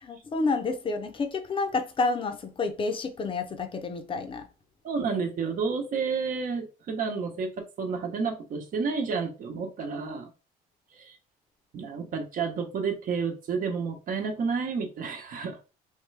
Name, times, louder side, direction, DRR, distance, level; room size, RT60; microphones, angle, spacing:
voice 1, 0.0-4.5, left 3 dB, 30° left, 0.7 m, -29 dB
voice 2, 4.8-10.3 10.9-11.2 11.7-15.6, right 5 dB, 55° right, 1.0 m, -30 dB
3.7 x 2.3 x 3.2 m
cardioid pair, 110°, 17 cm